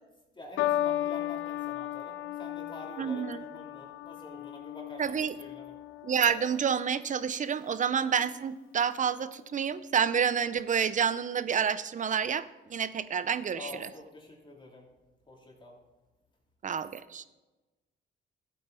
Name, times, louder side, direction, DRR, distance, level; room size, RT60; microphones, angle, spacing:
voice 1, 0.3-5.7 13.5-14.9 15.3-15.8, left 2 dB, 25° left, -2 dB, 3.0 m, -47 dB
sound 1, 0.6-7.1 7.9-8.3, left 13 dB, 85° left, 0.5 m, -35 dB
voice 2, 3.0-3.4 5.0-5.3 6.0-13.9 16.6-17.2, right 7 dB, 40° right, 15 dB, 0.6 m, -29 dB
14.0 x 8.5 x 4.0 m, 1.1 s
cardioid pair, 90°, 20 cm